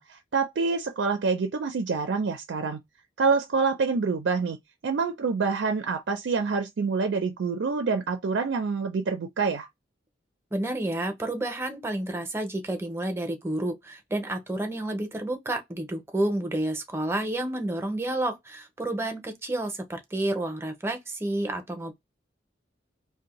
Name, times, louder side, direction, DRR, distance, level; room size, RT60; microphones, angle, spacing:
voice 1, 0.0-2.8 3.2-4.6 4.8-9.7, right 4 dB, 85° right, 0.4 m, -26 dB
voice 2, 10.5-21.9, right 1 dB, 15° right, 0.6 m, -30 dB
2.6 x 2.1 x 2.9 m
head